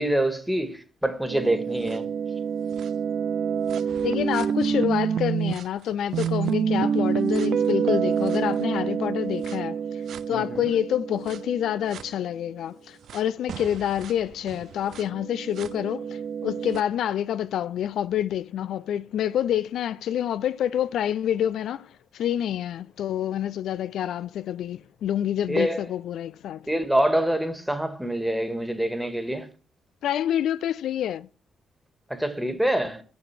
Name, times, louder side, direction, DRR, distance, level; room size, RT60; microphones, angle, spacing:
voice 1, 0.0-2.1 10.3-10.7 25.5-25.8 26.7-29.5 32.1-33.0, right 1 dB, 5° right, 1.9 m, -26 dB
sound 1, 1.3-5.6 6.1-12.1 13.1-13.2 13.5-16.8, right 7 dB, 65° right, 0.4 m, -27 dB
voice 2, 4.0-9.8 10.3-26.6 30.0-31.3, left 10 dB, 70° left, 0.3 m, -27 dB
6.9 x 6.5 x 6.0 m
hypercardioid pair, 50°, 0 cm